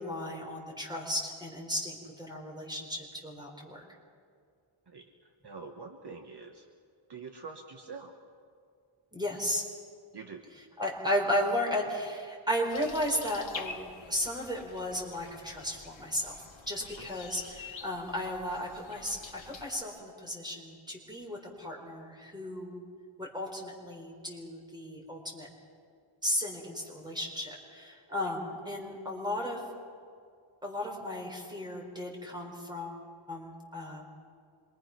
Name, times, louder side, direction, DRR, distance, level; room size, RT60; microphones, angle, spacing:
voice 1, 0.0-3.8 9.1-9.7 10.5-22.8 23.2-25.5 26.2-29.6 30.6-33.0 33.3-34.1, left 1 dB, 10° right, 0 dB, 4.5 m, -35 dB
voice 2, 5.4-6.6 7.1-8.1 10.1-10.4 28.1-28.2, right 4 dB, 50° right, 3 dB, 1.5 m, -45 dB
sound 1, 12.7-19.8, left 5 dB, 65° left, 1.9 m, -47 dB
26.5 x 23.5 x 6.0 m, 2.2 s
wide cardioid pair, 150°, 49 cm